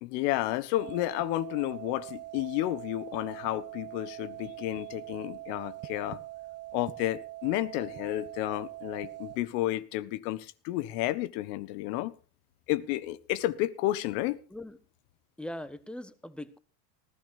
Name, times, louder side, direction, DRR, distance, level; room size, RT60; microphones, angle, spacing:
voice 1, 0.0-6.2 6.7-12.1 12.7-14.4, left 16 dB, 65° left, 1.3 m, -31 dB
sound 1, 0.8-9.4, right 16 dB, 30° right, 1.1 m, -43 dB
voice 2, 15.4-16.6, left 1 dB, ahead, 1.3 m, -40 dB
19.5 x 15.0 x 2.7 m
hypercardioid pair, 85°, 50 cm